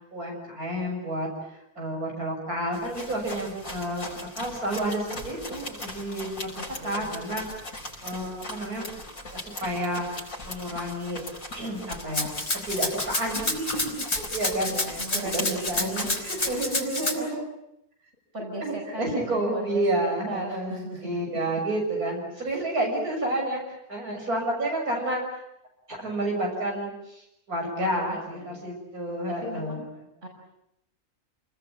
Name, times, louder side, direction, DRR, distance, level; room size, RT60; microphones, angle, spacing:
voice 1, 0.1-1.3 1.8-7.4 8.0-8.9 9.3-10.0 10.4-11.2 11.5-12.3 12.7-17.4 18.6-25.2 25.9-30.1, right 1 dB, 80° right, 0 dB, 7.5 m, -30 dB
sound 1, 2.7-16.8, left 1 dB, 70° left, 6.5 m, -39 dB
voice 2, 6.6-7.2 14.6-16.2 17.2-17.3 18.3-21.1 27.8-28.6 29.4-29.9 30.2-30.3, right 2 dB, 50° right, 1 dB, 7.0 m, -37 dB
Rattle (instrument), 12.1-17.1, left 2 dB, 45° left, 3.8 m, -29 dB
29.0 x 21.0 x 9.0 m, 0.79 s
omnidirectional pair, 1.6 m